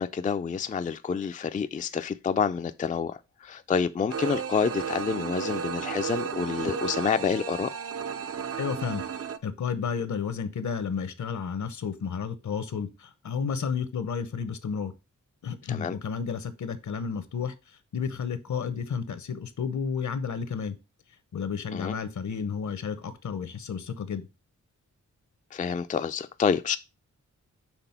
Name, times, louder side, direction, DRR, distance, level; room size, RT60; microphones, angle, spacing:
voice 1, 0.0-7.7 15.7-15.9 21.7-21.9 25.5-26.8, left 6 dB, 25° left, 0.4 m, -28 dB
sound 1, 4.1-9.4, right 7 dB, 55° right, 0.5 m, -33 dB
voice 2, 8.6-14.9 15.4-20.8 21.3-24.3, left 6 dB, 70° left, 0.9 m, -32 dB
6.0 x 3.5 x 5.7 m
wide cardioid pair, 120°, 30 cm